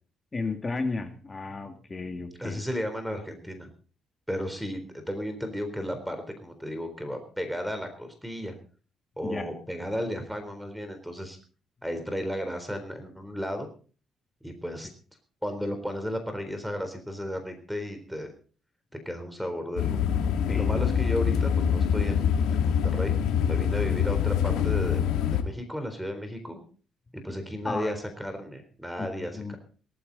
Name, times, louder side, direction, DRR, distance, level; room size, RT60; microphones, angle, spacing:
voice 1, 0.3-2.6 9.2-9.5 20.5-20.8 27.6-27.9 29.0-29.5, left 3 dB, 30° left, 6 dB, 2.4 m, -33 dB
voice 2, 2.4-3.7 4.3-8.6 9.2-11.4 11.8-13.7 14.4-14.9 15.4-18.3 19.1-20.0 20.5-22.2 22.5-23.1 23.4-25.0 25.3-26.6 27.1-29.6, equal, ahead, 8 dB, 3.9 m, -34 dB
sound 1, 19.8-25.4, left 8 dB, 90° left, 1.9 m, -25 dB
18.5 x 14.5 x 4.1 m, 0.40 s
cardioid pair, 90°, 0 cm